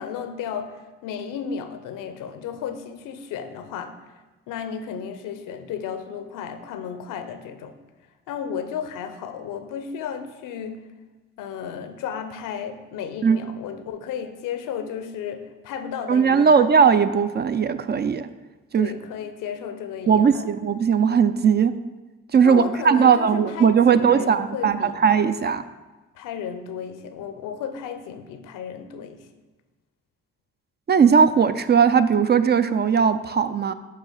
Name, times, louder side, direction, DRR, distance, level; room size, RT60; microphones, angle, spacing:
voice 1, 0.0-4.0 4.5-7.7 8.3-10.8 11.4-16.7 18.7-20.5 22.4-24.9 26.1-29.3, left 7 dB, 75° left, 9 dB, 0.6 m, -33 dB
voice 2, 16.1-18.3 18.7-18.9 20.1-21.7 22.3-25.6 30.9-33.7, right 6 dB, 35° right, 12 dB, 0.4 m, -18 dB
7.5 x 2.9 x 5.6 m, 1.2 s
supercardioid pair, 50°, 32 cm